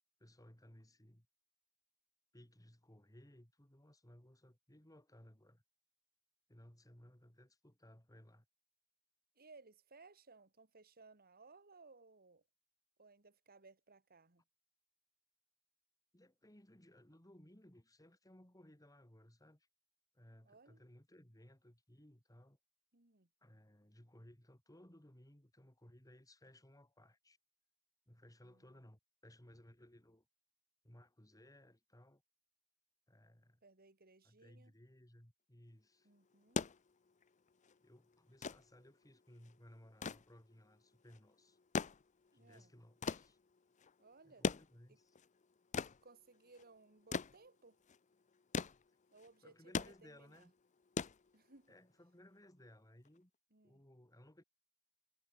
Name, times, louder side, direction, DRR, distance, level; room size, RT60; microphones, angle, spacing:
voice 1, 0.2-1.3 2.3-5.6 6.5-8.5 16.1-19.7 20.1-22.6 23.4-27.4 28.1-30.3 30.8-32.2 33.1-33.6 34.2-36.1 37.8-41.6 42.3-43.4 44.2-45.2 49.4-50.5 51.7-53.3 53.6-54.4, left 1 dB, 15° left, 3.3 m, -62 dB
voice 2, 9.4-12.4 13.0-14.4 20.5-20.8 22.9-23.3 28.4-28.7 33.6-34.7 36.0-36.6 42.3-42.7 44.0-44.5 44.9-45.0 46.0-47.8 49.1-50.5 51.3-51.7 53.5-53.8, right 3 dB, 45° right, 2.9 m, -62 dB
sound 1, 36.3-51.8 53.1-53.2, left 4 dB, 35° left, 0.6 m, -43 dB
head